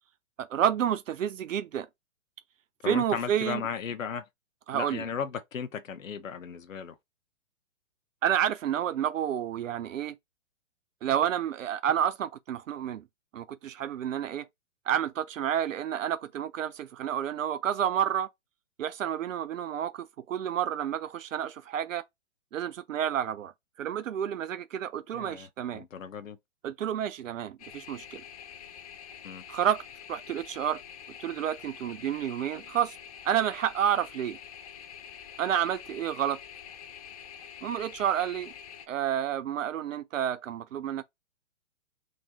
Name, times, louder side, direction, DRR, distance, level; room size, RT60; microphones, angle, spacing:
voice 1, 0.4-1.9 2.9-3.6 4.7-5.1 8.2-10.1 11.0-13.0 13.3-14.5 14.9-18.3 18.8-22.0 22.5-23.5 23.8-25.8 26.6-28.2 29.5-29.8 30.1-30.8 31.2-33.0 33.2-34.4 35.4-36.4 37.6-38.5 38.9-41.0, right 10 dB, 75° right, 0.6 m, -30 dB
voice 2, 2.8-4.2 4.7-7.0 25.1-26.4 29.2-29.4, left 7 dB, 85° left, 0.8 m, -36 dB
sound 1, 27.6-38.9, left 8 dB, 30° left, 0.4 m, -46 dB
3.6 x 3.1 x 2.8 m
hypercardioid pair, 125°, 39 cm